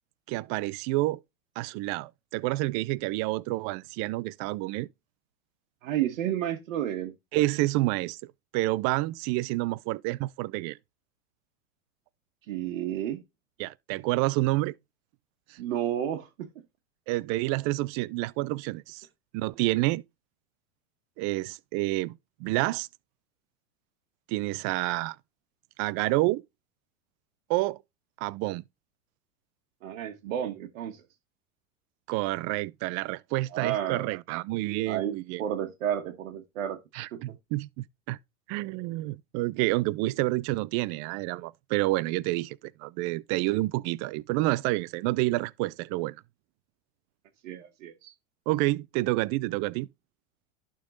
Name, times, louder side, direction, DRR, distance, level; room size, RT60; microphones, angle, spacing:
voice 1, 0.3-1.2 1.6-4.9 7.3-8.2 8.5-10.8 13.6-14.7 15.5-15.6 17.1-19.1 19.3-20.0 21.2-22.9 24.3-25.2 25.8-26.4 27.5-27.8 28.2-28.6 32.1-35.4 36.9-38.2 38.5-46.2 48.5-49.9, right 19 dB, 40° right, 0.5 m, -29 dB
voice 2, 5.8-7.1 12.5-13.2 15.6-16.5 29.8-31.0 33.5-34.1 34.9-36.8 37.1-37.2 47.4-48.1, right 11 dB, 70° right, 1.4 m, -31 dB
11.5 x 3.8 x 3.9 m
hypercardioid pair, 105°, 40 cm